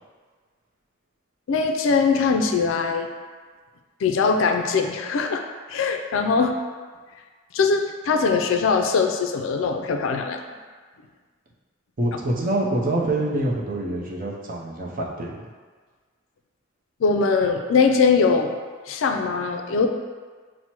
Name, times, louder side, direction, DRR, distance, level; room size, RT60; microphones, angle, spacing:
voice 1, 1.5-3.1 4.0-5.4 5.7-6.6 7.5-10.4 17.0-18.5 18.9-19.9, left 5 dB, 70° left, 4 dB, 0.3 m, -21 dB
voice 2, 12.0-15.4, right 1 dB, 45° right, -2 dB, 0.6 m, -25 dB
5.9 x 2.1 x 2.9 m, 1.5 s
head